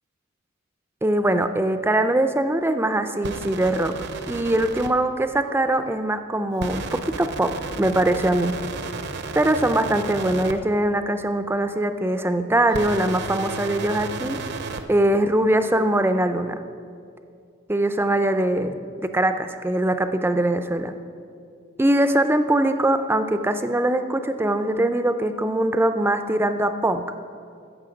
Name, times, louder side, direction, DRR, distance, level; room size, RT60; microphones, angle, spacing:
voice 1, 1.0-3.9 4.3-8.5 9.3-14.4 14.9-16.6 17.7-18.7 19.0-20.9 21.8-27.0, right 1 dB, 10° right, 9 dB, 0.4 m, -22 dB
sound 1, 3.2-4.9 6.6-10.5 12.7-14.8, right 4 dB, 55° right, 0.6 m, -32 dB
14.5 x 7.1 x 5.0 m, 2.4 s
head